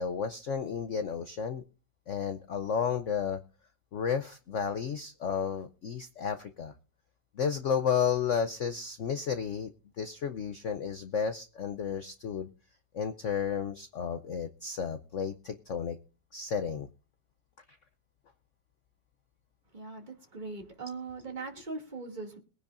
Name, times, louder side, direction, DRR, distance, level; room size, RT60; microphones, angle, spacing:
voice 1, 0.0-1.6 2.1-3.4 3.9-6.7 7.4-9.7 10.0-12.5 12.9-16.0 16.3-16.9, left 7 dB, 60° left, 9 dB, 0.8 m, -32 dB
voice 2, 19.7-22.4, right 3 dB, 25° right, 1 dB, 2.5 m, -40 dB
22.0 x 10.0 x 2.6 m, 0.35 s
omnidirectional pair, 2.0 m